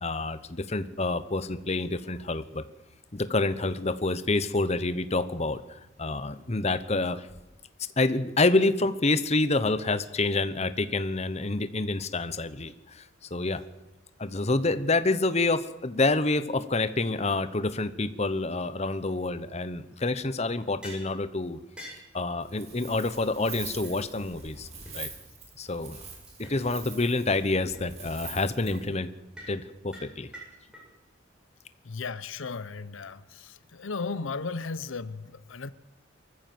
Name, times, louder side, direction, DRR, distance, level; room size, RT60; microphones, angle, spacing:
voice 1, 0.0-2.6 3.1-7.3 8.0-13.0 13.3-13.6 14.2-21.6 22.1-24.7 24.9-25.1 25.6-26.0 26.4-29.1 29.5-30.3, left 2 dB, 35° left, 12 dB, 1.0 m, -27 dB
sound 1, 20.8-21.1 21.8-22.1 22.8-22.9 23.1-23.2 23.5-23.6 23.8-23.9 24.4-24.5 24.9-25.0 26.3-26.6 26.8-26.9 27.3-27.4 27.7-27.8 28.2-28.5 28.7-28.9 29.4-29.6 29.9-30.8, equal, 5° right, 7.4 m, -45 dB
Wind, 22.4-28.9, right 5 dB, 35° right, 4.2 m, -44 dB
voice 2, 31.8-35.7, left 4 dB, 80° left, 15 dB, 0.8 m, -35 dB
23.5 x 14.5 x 7.9 m, 0.96 s
head